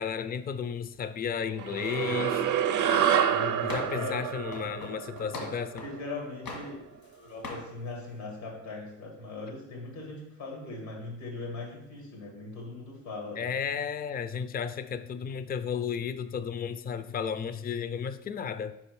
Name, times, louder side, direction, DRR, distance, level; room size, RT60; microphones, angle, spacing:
voice 1, 0.0-2.4 3.6-5.8 13.4-18.7, left 7 dB, 25° left, 13 dB, 0.4 m, -33 dB
sound 1, 1.6-6.3, right 9 dB, 55° right, 0.6 m, -28 dB
voice 2, 3.3-4.2 5.8-13.4, left 3 dB, 90° left, -1 dB, 2.3 m, -40 dB
sound 2, 3.7-4.1 4.5-6.0 6.4-7.1 7.4-7.7, left 2 dB, 75° left, 1.8 m, -40 dB
5.1 x 4.4 x 4.7 m, 0.85 s
supercardioid pair, 65°, 37 cm